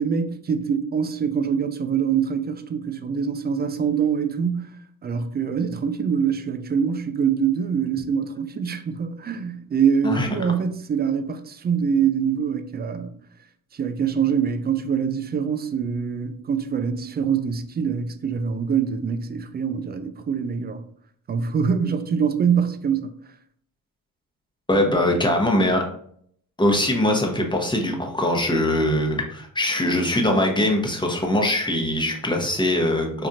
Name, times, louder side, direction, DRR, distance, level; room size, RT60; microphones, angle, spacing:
voice 1, 0.0-4.7 5.0-13.1 13.7-20.8 21.3-23.1, right 7 dB, 25° right, 0.4 m, -24 dB
voice 2, 24.7-25.8 26.6-33.3, left 1 dB, 10° left, 1.0 m, -22 dB
4.2 x 2.5 x 2.5 m
hypercardioid pair, 50°, 42 cm